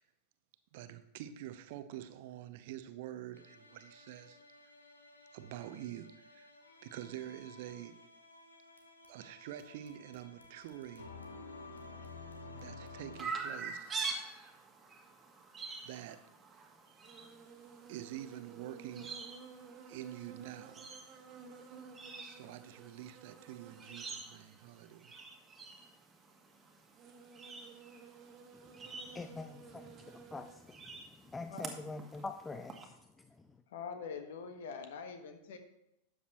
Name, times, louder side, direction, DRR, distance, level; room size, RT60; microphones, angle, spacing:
voice 1, 0.7-4.4 5.3-6.5 6.8-8.1 9.1-11.1 12.5-14.0 15.8-16.3 16.9-17.0 17.9-19.2 19.9-20.9 22.2-25.2, right 12 dB, 50° right, 0.7 m, -47 dB
sound 1, 3.3-13.3, left 3 dB, 80° left, 1.2 m, -53 dB
Chirp tweet, 13.2-32.8, right 4 dB, 20° right, 1.5 m, -47 dB
sound 2, 13.8-14.2 15.8-15.9 16.5-16.6 17.0-24.3 24.6-24.7 25.3-26.2 26.8-30.6, right 5 dB, 35° right, 1.5 m, -55 dB
voice 2, 29.1-33.0 33.4-33.5, left 3 dB, 10° left, 0.5 m, -45 dB
voice 3, 33.7-35.6, left 6 dB, 55° left, 1.4 m, -44 dB
12.5 x 8.3 x 3.0 m
figure-of-eight pair, 90°, 0 cm